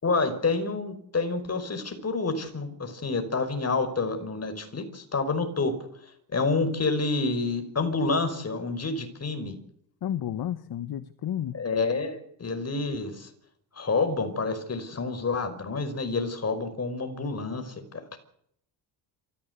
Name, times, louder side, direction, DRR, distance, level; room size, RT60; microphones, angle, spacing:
voice 1, 0.0-5.7 6.3-9.6 11.5-13.3 13.8-17.7 18.1-18.2, left 3 dB, 35° left, 8 dB, 5.3 m, -28 dB
voice 2, 10.0-11.6, left 10 dB, 55° left, 13 dB, 1.2 m, -31 dB
26.0 x 15.0 x 8.3 m, 0.72 s
cardioid pair, 80°, 45 cm